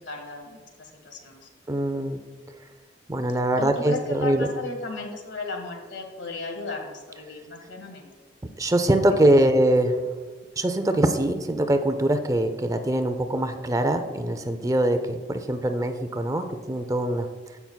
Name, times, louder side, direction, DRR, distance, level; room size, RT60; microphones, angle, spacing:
voice 1, 0.0-1.5 3.6-8.1 9.2-9.3, left 3 dB, 90° left, 3 dB, 1.6 m, -35 dB
voice 2, 1.7-2.2 3.1-4.5 8.6-10.0 10.6-17.3, right 1 dB, 20° right, 8 dB, 0.5 m, -23 dB
15.0 x 5.9 x 2.3 m, 1.5 s
head